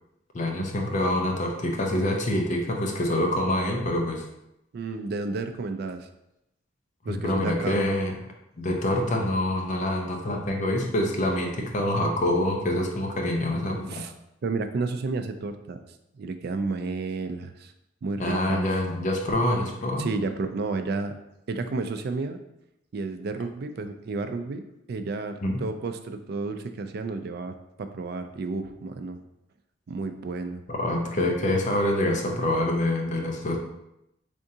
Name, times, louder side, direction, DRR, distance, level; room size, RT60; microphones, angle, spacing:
voice 1, 0.3-4.2 7.1-8.1 8.6-14.0 18.2-20.1 25.4-25.5 30.7-33.6, left 1 dB, 45° left, 1 dB, 0.6 m, -26 dB
voice 2, 4.7-6.1 7.0-7.8 13.9-14.1 14.4-15.8 16.1-17.7 18.0-18.7 20.0-21.2 21.5-22.4 22.9-29.2 29.9-30.6, right 3 dB, 60° right, 8 dB, 0.4 m, -31 dB
3.7 x 3.4 x 2.7 m, 0.85 s
head